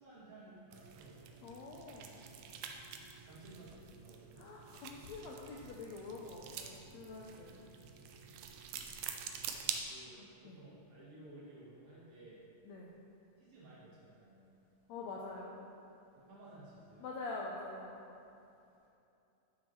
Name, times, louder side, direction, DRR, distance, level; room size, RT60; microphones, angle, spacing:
voice 1, 0.0-1.2 3.2-4.5 9.9-12.5 13.4-14.4 16.1-17.1, right 2 dB, 60° right, -9 dB, 3.3 m, -55 dB
sound 1, 0.7-9.8, right 7 dB, 85° right, 1.7 m, -47 dB
voice 2, 1.4-2.2 4.4-7.6 10.2-10.6 12.7-12.9 14.9-15.7 17.0-18.0, left 3 dB, 80° left, -2 dB, 1.6 m, -46 dB
12.0 x 6.3 x 3.1 m, 2.8 s
omnidirectional pair, 3.8 m